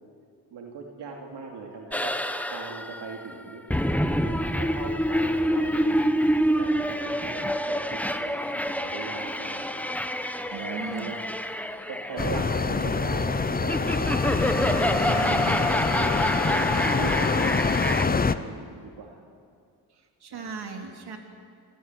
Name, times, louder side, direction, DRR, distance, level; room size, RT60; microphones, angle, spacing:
voice 1, 0.5-2.1 2.5-3.6 4.2-6.1 6.4-9.8 10.5-11.2 11.9-14.9 15.5-19.2 20.3-20.6, right 4 dB, 85° right, 0 dB, 2.9 m, -39 dB
sound 1, 1.9-18.1, equal, 5° left, 1.1 m, -27 dB
voice 2, 10.5-11.1 15.1-15.6 20.2-21.2, right 5 dB, 70° right, 3 dB, 3.3 m, -36 dB
sound 2, 12.2-18.3, left 4 dB, 20° left, 0.8 m, -25 dB
28.0 x 17.0 x 9.4 m, 2.2 s
cardioid pair, 100°, 41 cm